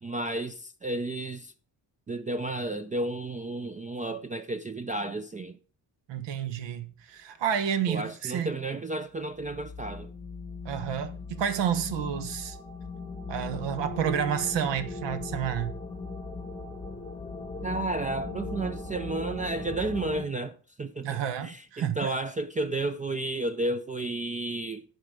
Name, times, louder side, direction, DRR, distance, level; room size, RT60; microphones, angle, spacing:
voice 1, 0.0-1.5 2.1-5.6 7.9-10.1 17.6-24.8, right 2 dB, 20° right, 0.3 m, -32 dB
voice 2, 6.1-8.5 10.6-12.6 13.3-15.7 21.0-22.1, right 8 dB, 85° right, 1.2 m, -30 dB
sound 1, 9.4-20.2, left 3 dB, 15° left, 0.8 m, -38 dB
10.5 x 4.9 x 6.6 m
cardioid pair, 165°, 42 cm